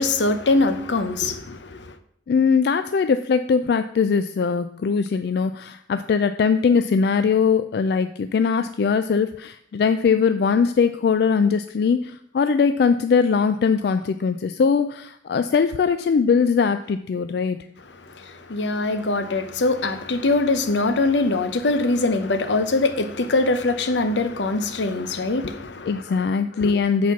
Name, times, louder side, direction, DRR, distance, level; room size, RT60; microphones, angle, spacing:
voice 1, 0.0-2.0 17.9-26.2 26.6-26.8, left 2 dB, 85° left, 0.8 m, -23 dB
voice 2, 2.3-17.7 25.9-27.1, left 5 dB, 65° left, 0.3 m, -21 dB
8.4 x 4.3 x 5.8 m
head